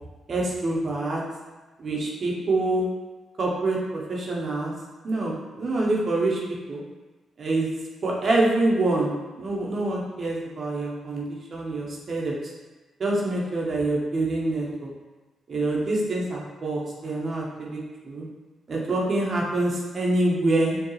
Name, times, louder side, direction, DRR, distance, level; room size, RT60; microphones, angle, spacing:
voice 1, 0.3-1.2 1.8-2.9 3.4-4.7 5.0-6.4 6.7-6.8 7.4-7.7 8.0-12.4 13.0-14.9 15.5-18.3 18.7-20.8, right 2 dB, 50° right, -3 dB, 0.8 m, -26 dB
4.6 x 2.3 x 3.2 m, 1.2 s
cardioid pair, 65°, 0 cm